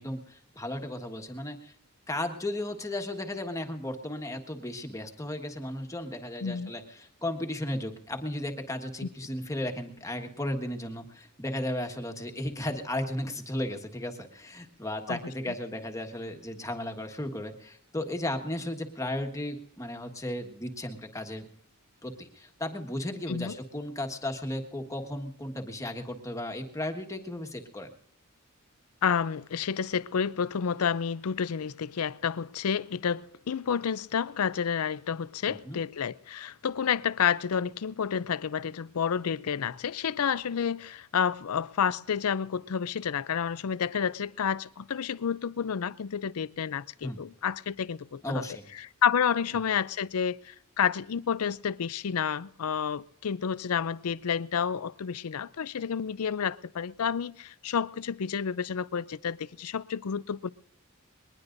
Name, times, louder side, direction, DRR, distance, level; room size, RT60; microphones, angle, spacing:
voice 1, 0.0-1.7 2.1-21.5 22.0-27.9 35.4-35.8 47.0-47.2 48.2-48.7, left 1 dB, 15° left, 1.5 m, -35 dB
voice 2, 29.0-48.4 48.7-60.5, left 7 dB, 80° left, 0.5 m, -30 dB
21.5 x 19.5 x 2.6 m
head